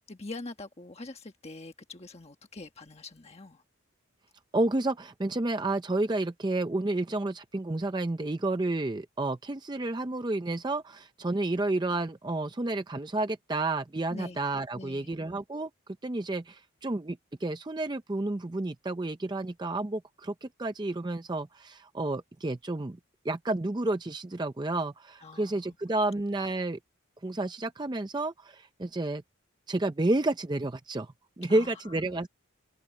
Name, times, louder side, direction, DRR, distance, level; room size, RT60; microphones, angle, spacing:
voice 1, 0.0-3.6 14.1-14.4 14.7-15.2 25.2-25.8 31.4-32.2, left 2 dB, 30° left, 1.3 m, -44 dB
voice 2, 4.5-15.7 16.0-23.0 23.2-26.8 27.2-29.2 29.7-32.3, right 2 dB, 20° right, 0.5 m, -30 dB
head